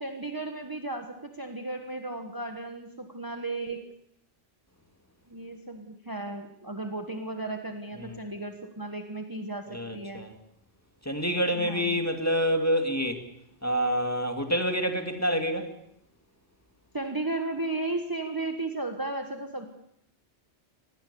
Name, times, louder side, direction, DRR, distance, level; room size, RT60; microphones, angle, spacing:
voice 1, 0.0-3.9 5.3-10.3 11.5-12.0 16.9-19.7, right 2 dB, 20° right, 5 dB, 1.4 m, -35 dB
voice 2, 9.7-10.3 11.0-13.2 13.6-15.7, equal, 15° left, 5 dB, 2.4 m, -27 dB
26.0 x 20.0 x 7.0 m, 0.75 s
omnidirectional pair, 1.2 m